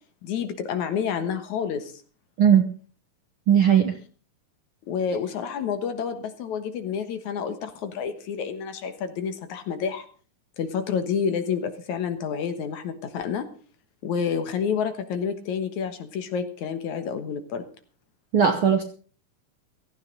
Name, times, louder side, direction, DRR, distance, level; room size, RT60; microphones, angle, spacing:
voice 1, 0.2-1.9 4.9-10.0 10.6-13.5 14.0-17.6, left 7 dB, 65° left, 9 dB, 2.5 m, -29 dB
voice 2, 3.5-3.9 18.3-18.8, right 8 dB, 60° right, 7 dB, 1.4 m, -18 dB
16.5 x 15.0 x 3.9 m, 0.40 s
omnidirectional pair, 3.9 m